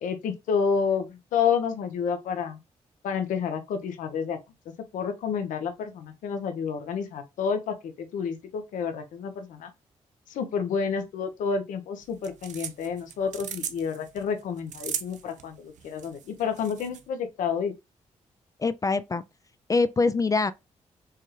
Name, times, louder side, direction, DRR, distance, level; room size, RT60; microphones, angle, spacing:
voice 1, 0.0-2.6 3.0-4.4 4.7-9.7 10.3-17.7, left 6 dB, 80° left, 0.7 m, -29 dB
sound 1, 12.0-17.0, right 8 dB, 70° right, 0.5 m, -38 dB
voice 2, 18.6-19.2 19.7-20.5, left 3 dB, 25° left, 0.3 m, -24 dB
4.5 x 2.4 x 3.0 m
supercardioid pair, 55°, 13 cm